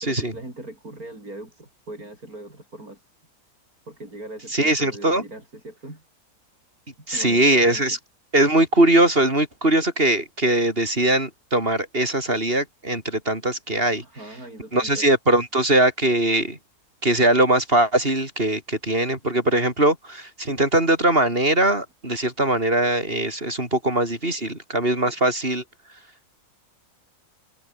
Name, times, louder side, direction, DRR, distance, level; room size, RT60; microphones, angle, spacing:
voice 1, 0.0-3.0 3.9-6.0 7.1-7.9 14.0-15.1 25.0-25.1, right 2 dB, 65° right, 8.0 m, -40 dB
voice 2, 4.5-5.2 7.1-8.0 8.3-14.0 14.7-16.6 17.0-25.6, right 1 dB, 35° right, 5.6 m, -21 dB
omnidirectional pair, 1.7 m